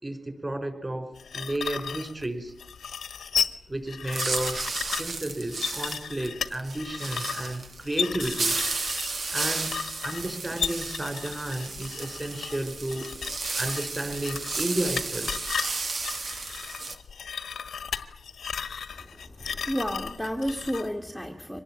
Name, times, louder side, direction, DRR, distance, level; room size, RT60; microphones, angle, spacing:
voice 1, 0.0-2.5 3.7-8.6 9.3-13.1 13.6-15.4, right 1 dB, 20° right, 7 dB, 4.9 m, -32 dB
sound 1, 1.2-20.9, left 7 dB, 90° left, 1.5 m, -35 dB
sound 2, 4.1-17.0, right 3 dB, 55° right, 2.0 m, -33 dB
voice 2, 19.4-21.6, equal, ahead, 2 dB, 1.7 m, -31 dB
25.0 x 19.5 x 8.9 m, 0.72 s
wide cardioid pair, 120°, 0 cm